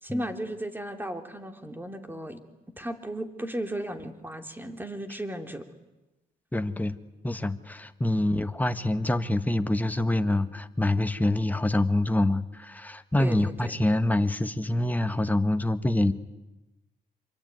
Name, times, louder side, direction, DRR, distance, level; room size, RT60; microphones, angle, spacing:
voice 1, 0.0-2.4 2.8-5.6 13.2-13.8, right 1 dB, 10° right, 6 dB, 3.4 m, -35 dB
voice 2, 6.5-7.0 7.2-16.1, left 1 dB, 10° left, 9 dB, 1.5 m, -26 dB
26.5 x 23.5 x 9.4 m, 1.0 s
cardioid pair, 75°, 16 cm